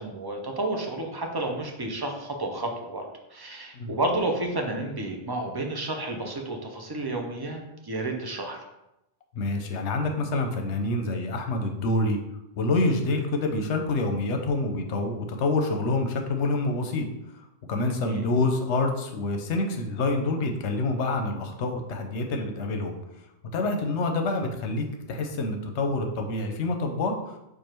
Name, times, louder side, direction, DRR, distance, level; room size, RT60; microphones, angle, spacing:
voice 1, 0.0-3.1 3.3-8.6 18.0-18.2, right 2 dB, 30° right, 2 dB, 0.4 m, -31 dB
voice 2, 9.3-12.2 12.6-17.1 17.7-23.0 23.5-27.3, left 2 dB, 80° left, 4 dB, 1.0 m, -27 dB
4.7 x 2.5 x 4.4 m, 0.88 s
omnidirectional pair, 1.2 m